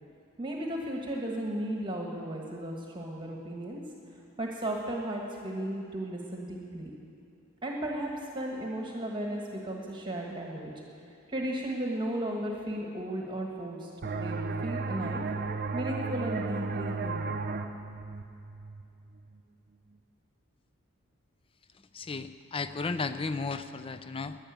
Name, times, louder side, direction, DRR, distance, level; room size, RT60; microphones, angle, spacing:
voice 1, 0.4-3.8 4.4-6.9 7.6-10.7 11.3-15.2 15.7-17.6, right 1 dB, 25° right, -1 dB, 1.4 m, -35 dB
sound 1, 14.0-19.4, right 4 dB, 45° right, 0.6 m, -34 dB
voice 2, 21.9-24.4, left 4 dB, 25° left, 11 dB, 0.5 m, -34 dB
12.0 x 10.0 x 9.2 m, 2.6 s
head